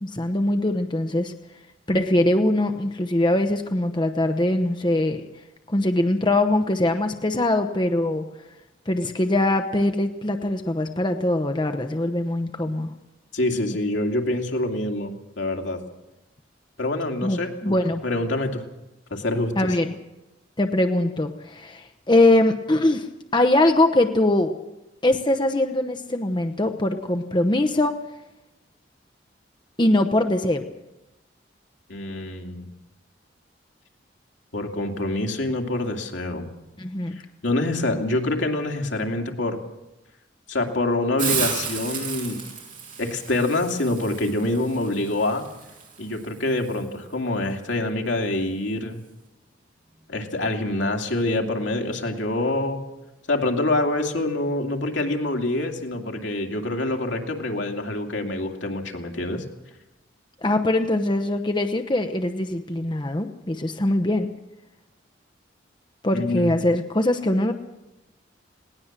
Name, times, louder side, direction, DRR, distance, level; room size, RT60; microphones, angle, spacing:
voice 1, 0.0-1.3 1.9-5.2 5.7-8.2 8.9-12.9 17.2-18.0 19.6-19.9 20.6-23.1 23.3-24.5 25.0-28.0 29.8-30.6 36.8-37.2 60.4-64.3 66.0-67.5, left 1 dB, 25° left, 7 dB, 0.9 m, -22 dB
voice 2, 13.3-15.8 16.8-17.8 18.0-18.6 19.1-19.7 31.9-32.6 34.5-36.5 37.4-39.6 40.5-42.4 43.0-45.5 46.0-49.0 50.1-52.8 53.3-59.4 66.1-66.5, left 2 dB, 80° left, 3 dB, 2.6 m, -26 dB
Hiss, 41.2-46.8, right 6 dB, 45° right, 6.3 m, -33 dB
20.0 x 18.0 x 7.4 m, 0.93 s
head